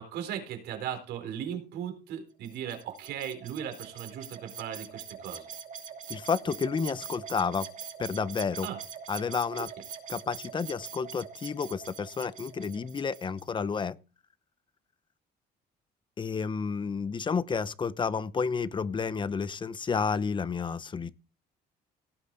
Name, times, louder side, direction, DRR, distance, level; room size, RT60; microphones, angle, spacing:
voice 1, 0.0-5.5 8.6-8.8 9.6-9.7, right 9 dB, 80° right, 5 dB, 4.1 m, -37 dB
sound 1, 2.4-13.5, right 7 dB, 50° right, 2.8 m, -43 dB
voice 2, 6.1-7.7 8.0-8.7 9.1-9.7 10.1-14.0 16.2-21.1, left 5 dB, 30° left, 16 dB, 0.9 m, -31 dB
17.5 x 8.1 x 4.1 m, 0.33 s
cardioid pair, 110°, 17 cm